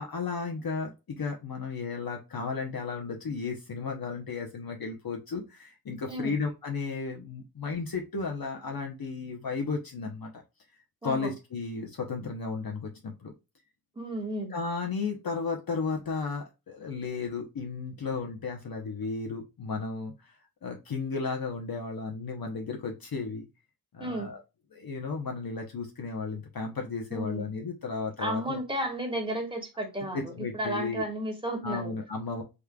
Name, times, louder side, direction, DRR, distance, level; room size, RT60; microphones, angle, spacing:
voice 1, 0.0-10.4 11.0-13.3 14.5-20.3 20.6-23.5 23.9-24.4 24.7-28.6 30.1-31.0 31.6-32.4, left 4 dB, 55° left, 0.9 m, -34 dB
voice 2, 13.9-14.5 24.0-24.3 27.1-27.5 28.2-31.9, right 1 dB, 10° right, 1.6 m, -33 dB
3.7 x 3.1 x 2.3 m
cardioid pair, 40°, 43 cm